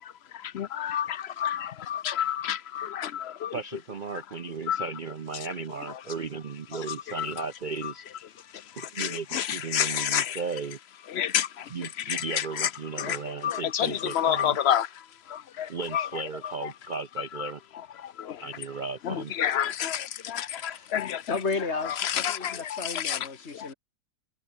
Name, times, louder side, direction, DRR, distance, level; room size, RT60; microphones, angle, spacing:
voice 1, 0.0-3.5 4.7-4.9 6.7-7.4 7.8-7.9 8.5-10.4 11.1-12.7 13.0-16.1 16.6-16.7 17.4-17.5 18.0-18.5 19.0-21.4 21.8-23.3 23.5-23.7, left 10 dB, 90° left, 0.5 m, -30 dB
voice 2, 3.5-8.0 8.8-10.8 11.7-14.6 15.7-17.6 18.4-19.3, right 4 dB, 80° right, 0.4 m, -35 dB
voice 3, 20.5-20.9 21.3-23.7, left 4 dB, 35° left, 2.5 m, -33 dB
omnidirectional pair, 2.0 m